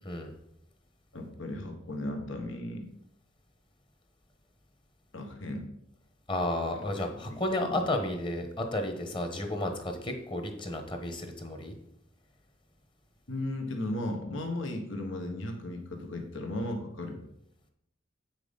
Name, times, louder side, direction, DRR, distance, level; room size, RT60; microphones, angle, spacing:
voice 1, 1.1-2.9 5.1-5.7 7.0-7.8 13.3-17.2, left 1 dB, 80° left, 4 dB, 1.3 m, -36 dB
voice 2, 6.3-11.7, left 1 dB, 25° left, 5 dB, 1.2 m, -32 dB
8.3 x 6.0 x 5.2 m, 0.77 s
head